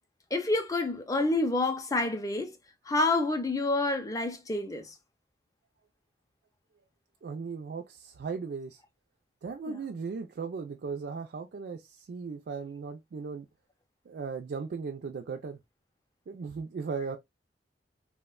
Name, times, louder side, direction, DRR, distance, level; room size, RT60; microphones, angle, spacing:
voice 1, 0.3-2.6 2.9-4.9 9.7-9.8, left 2 dB, 20° left, 0.4 m, -28 dB
voice 2, 7.2-8.8 9.4-13.5 14.1-15.6 16.3-17.2, right 5 dB, 60° right, 0.3 m, -37 dB
3.4 x 2.1 x 2.2 m
head